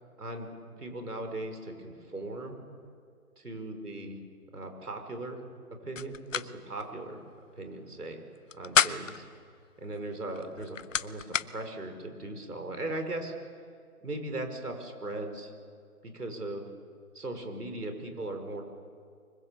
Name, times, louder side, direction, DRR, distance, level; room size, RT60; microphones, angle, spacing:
voice 1, 0.2-0.5 0.8-2.6 3.4-4.2 4.5-5.4 5.8-7.2 7.6-8.2 8.5-9.2 9.8-13.3 14.0-15.5 16.0-16.7 17.1-18.6, right 2 dB, 80° right, 5 dB, 5.3 m, -38 dB
sound 1, 6.0-6.5 6.8-6.9 8.4-9.2 10.3-11.5, left 7 dB, 55° left, 0.7 m, -28 dB
24.5 x 23.0 x 7.4 m, 2.2 s
figure-of-eight pair, 150°, 45 cm